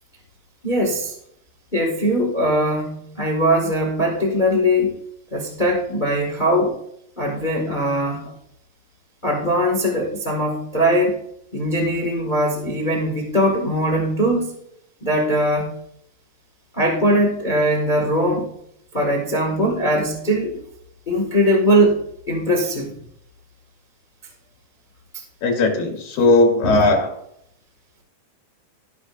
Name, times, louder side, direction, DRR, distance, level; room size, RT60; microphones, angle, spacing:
voice 1, 0.6-1.1 1.7-5.0 5.3-6.8 7.2-8.3 9.2-11.2 11.5-14.5 15.0-15.8 16.7-18.5 18.9-20.6 21.1-22.9 26.6-26.9, equal, 20° left, 0 dB, 1.1 m, -20 dB
voice 2, 25.4-27.1, left 2 dB, 85° left, 1 dB, 3.9 m, -17 dB
13.0 x 12.0 x 2.6 m, 0.72 s
omnidirectional pair, 3.9 m